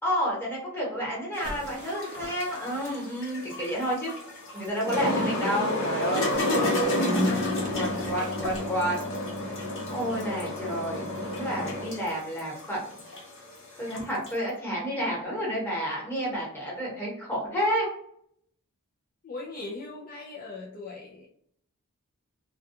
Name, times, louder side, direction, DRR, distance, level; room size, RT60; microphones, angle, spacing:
voice 1, 0.0-4.1 4.5-8.9 9.9-12.8 13.8-17.9, equal, 10° left, -5 dB, 1.1 m, -30 dB
sound 1, 1.4-14.4, left 1 dB, 60° left, 0.8 m, -30 dB
sound 2, 1.4-3.3 6.2-8.7, right 1 dB, 35° right, 0.4 m, -45 dB
voice 2, 19.2-21.3, left 3 dB, 40° left, -2 dB, 0.4 m, -39 dB
2.3 x 2.2 x 2.7 m, 0.67 s
head